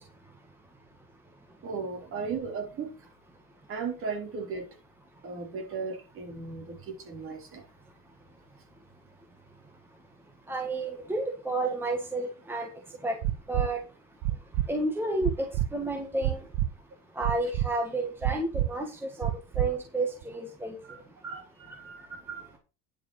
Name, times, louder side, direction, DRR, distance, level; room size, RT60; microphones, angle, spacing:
voice 1, 1.6-2.9 3.7-4.7 5.2-7.6 20.9-21.0 21.3-21.4 21.8-22.0 22.3-22.6, right 5 dB, 35° right, 3.8 m, -36 dB
voice 2, 10.5-12.7 13.0-13.2 13.5-13.8 14.7-16.4 17.1-20.8 21.2-21.4 22.0-22.4, right 2 dB, 5° right, 1.7 m, -31 dB
sound 1, 13.2-13.7 14.2-14.7 15.2-15.7 16.2-16.7 17.2-17.7 18.2-18.7 19.2-19.7 20.2-20.3, right 14 dB, 55° right, 0.9 m, -27 dB
10.5 x 6.9 x 4.9 m
cardioid pair, 155°, 38 cm